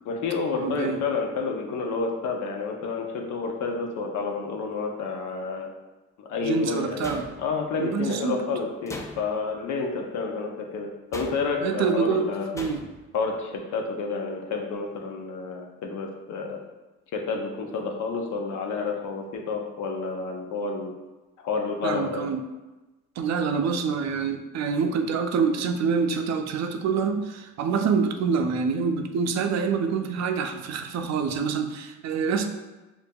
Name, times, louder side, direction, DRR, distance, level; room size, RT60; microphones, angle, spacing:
voice 1, 0.1-5.7 6.2-7.1 7.4-12.5 13.1-16.6 17.1-20.9 21.4-22.3, left 4 dB, 75° left, 2 dB, 0.7 m, -30 dB
voice 2, 0.6-1.0 6.4-7.3 7.8-8.4 11.6-12.8 21.8-22.4 23.2-32.5, right 5 dB, 65° right, 6 dB, 0.4 m, -26 dB
sound 1, 7.0-7.8 8.9-9.5 11.1-11.7 12.6-13.1, left 2 dB, 10° left, 0.4 m, -39 dB
5.2 x 2.6 x 2.2 m, 1.1 s
cardioid pair, 90°, 30 cm